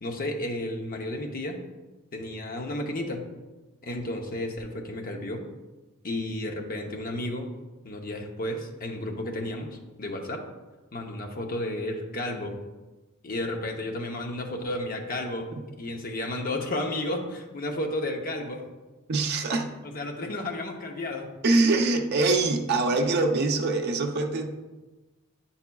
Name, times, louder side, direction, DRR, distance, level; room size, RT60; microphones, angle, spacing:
voice 1, 0.0-1.6 2.1-3.3 3.8-5.4 6.0-7.5 7.8-10.5 10.9-12.6 13.2-15.5 15.8-18.6 19.9-21.3, left 1 dB, 40° left, 2 dB, 0.7 m, -32 dB
voice 2, 19.1-19.7 21.4-24.5, right 3 dB, 50° right, 3 dB, 0.6 m, -24 dB
8.2 x 5.5 x 2.3 m, 1.2 s
head